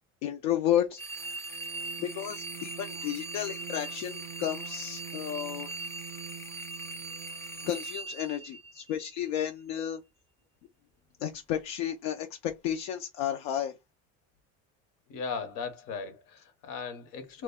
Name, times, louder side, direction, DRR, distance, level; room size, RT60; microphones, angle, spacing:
voice 1, 0.2-1.0 2.0-5.9 7.6-10.0 11.2-13.7, left 10 dB, 85° left, 0.5 m, -32 dB
sound 1, 1.0-9.2, right 2 dB, 10° left, 0.3 m, -40 dB
sound 2, 1.1-7.9, right 12 dB, 50° right, 0.5 m, -47 dB
voice 2, 15.1-17.4, left 5 dB, 65° left, 0.9 m, -37 dB
2.2 x 2.1 x 3.4 m
supercardioid pair, 95°, 35 cm